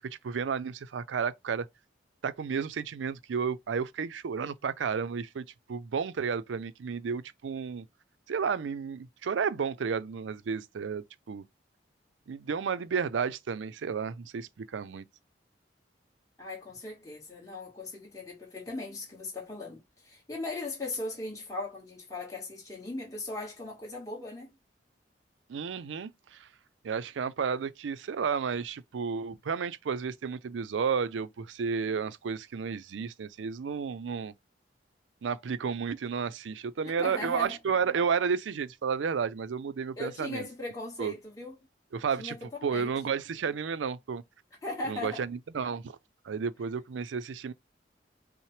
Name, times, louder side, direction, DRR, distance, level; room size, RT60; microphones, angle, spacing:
voice 1, 0.0-1.7 2.2-7.9 8.3-11.4 12.3-15.0 25.5-26.5 26.8-34.3 35.2-40.5 41.0-41.1 41.9-42.4 42.6-44.2 44.9-45.9 46.2-47.5, right 6 dB, 90° right, 0.4 m, -32 dB
voice 2, 16.4-24.5 37.0-37.6 40.0-41.6 42.2-42.9 44.6-45.2, left 2 dB, 20° left, 1.4 m, -38 dB
5.6 x 2.0 x 3.1 m
head